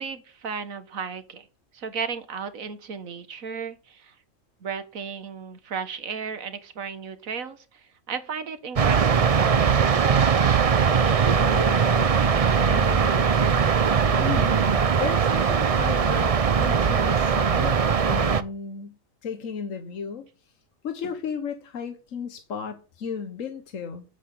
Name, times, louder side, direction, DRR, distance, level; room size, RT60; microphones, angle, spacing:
voice 1, 0.0-1.5 1.7-4.2 4.6-9.8, right 6 dB, 90° right, 1.8 m, -34 dB
sound 1, 8.8-18.4, right 6 dB, 40° right, 0.5 m, -20 dB
voice 2, 11.4-13.6 14.1-17.8 18.1-20.3 20.8-24.0, left 6 dB, 75° left, 1.5 m, -35 dB
8.1 x 8.0 x 8.5 m
omnidirectional pair, 1.4 m